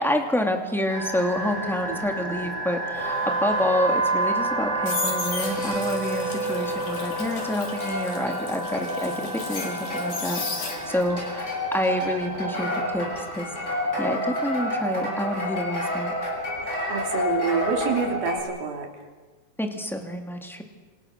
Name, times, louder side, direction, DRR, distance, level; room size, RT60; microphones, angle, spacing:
voice 1, 0.0-12.7 12.9-13.1 13.3-13.5 14.0-16.1 19.6-20.6, left 1 dB, ahead, 3 dB, 1.8 m, -28 dB
sound 1, 0.9-18.4, right 1 dB, 20° left, 7.3 m, -29 dB
voice 2, 1.9-2.4 6.3-6.8 10.7-11.2 16.6-18.9, right 5 dB, 85° right, 2 dB, 4.9 m, -29 dB
sound 2, 4.4-11.2 11.5-14.4 14.7-15.0, left 4 dB, 70° left, 5.6 m, -35 dB
29.5 x 26.5 x 6.7 m, 1.4 s
omnidirectional pair, 4.1 m